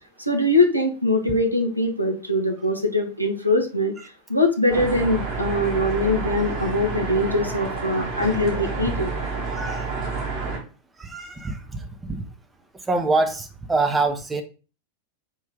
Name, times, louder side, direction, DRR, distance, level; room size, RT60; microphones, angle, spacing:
voice 1, 0.3-3.9 4.3-9.1, left 1 dB, 90° right, 3 dB, 0.7 m, -22 dB
sound 1, 4.7-10.6, right 4 dB, 30° right, 1.3 m, -29 dB
voice 2, 9.5-9.9 11.0-12.2 12.9-14.4, right 3 dB, 10° right, 7 dB, 0.6 m, -25 dB
4.6 x 2.7 x 3.4 m, 0.35 s
figure-of-eight pair, 90°, 0 cm